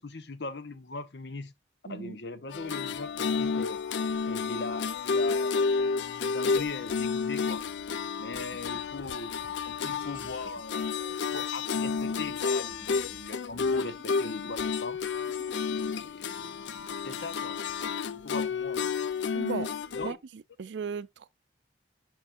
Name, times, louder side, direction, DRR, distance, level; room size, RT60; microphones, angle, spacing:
voice 1, 0.0-1.5 1.9-3.8 4.2-7.6 8.2-9.4 9.6-15.0 15.6-17.6 18.1-18.9 19.9-20.2, left 3 dB, 65° left, 0.9 m, -40 dB
voice 2, 1.9-2.2 19.3-19.7 20.0-21.3, right 6 dB, 85° right, 0.4 m, -36 dB
sound 1, 2.5-20.1, left 5 dB, 85° left, 0.5 m, -31 dB
sound 2, 6.8-7.3 7.6-14.1 14.4-15.8 16.1-17.3, right 1 dB, 35° right, 3.7 m, -56 dB
11.0 x 4.4 x 2.5 m
head